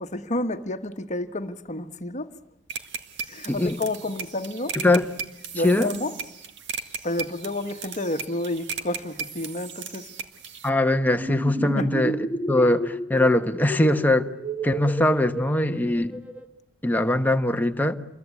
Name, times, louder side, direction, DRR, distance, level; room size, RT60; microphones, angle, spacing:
voice 1, 0.0-2.3 3.2-4.8 5.5-6.1 7.0-10.1 11.6-11.9, left 1 dB, 35° left, 1.4 m, -30 dB
sound 1, 2.7-10.7, right 6 dB, 60° right, 2.0 m, -36 dB
voice 2, 4.7-5.1 5.6-5.9 10.6-12.1 12.5-14.3 14.6-16.2 16.8-18.0, left 1 dB, 10° left, 1.1 m, -21 dB
sound 2, 11.1-16.4, right 1 dB, 5° right, 1.7 m, -32 dB
28.0 x 22.5 x 8.5 m
head